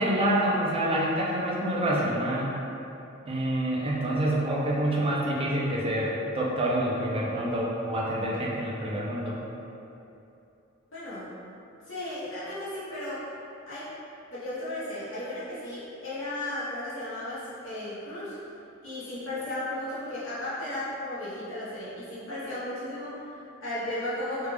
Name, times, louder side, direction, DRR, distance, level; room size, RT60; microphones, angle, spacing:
voice 1, 0.0-2.5 3.3-9.4, right 1 dB, 30° right, -4 dB, 0.5 m, -27 dB
voice 2, 10.9-11.3 11.9-13.3 13.7-13.9 14.3-18.3 18.8-24.5, left 1 dB, 75° left, -12 dB, 1.2 m, -35 dB
3.2 x 2.4 x 3.2 m, 2.8 s
head